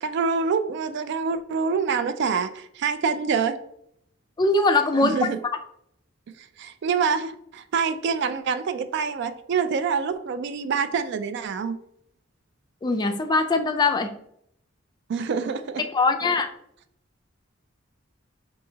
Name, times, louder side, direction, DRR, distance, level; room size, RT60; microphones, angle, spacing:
voice 1, 0.0-3.6 5.0-5.4 6.6-11.8 15.1-15.8, right 5 dB, 60° right, 0.3 m, -26 dB
voice 2, 4.4-5.3 12.8-14.1 15.9-16.5, left 3 dB, 20° left, 0.3 m, -21 dB
5.4 x 2.8 x 2.7 m
head